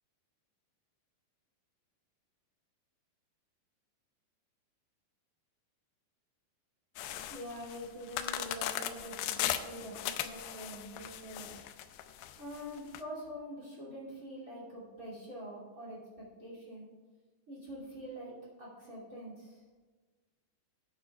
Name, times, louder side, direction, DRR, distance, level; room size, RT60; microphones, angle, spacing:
sound 1, 7.0-13.0, left 12 dB, 90° left, 2.3 m, -38 dB
voice 1, 7.3-11.6 12.4-16.9 17.5-19.6, equal, 25° right, -4 dB, 2.2 m, -45 dB
17.5 x 8.7 x 2.4 m, 1.3 s
omnidirectional pair, 5.3 m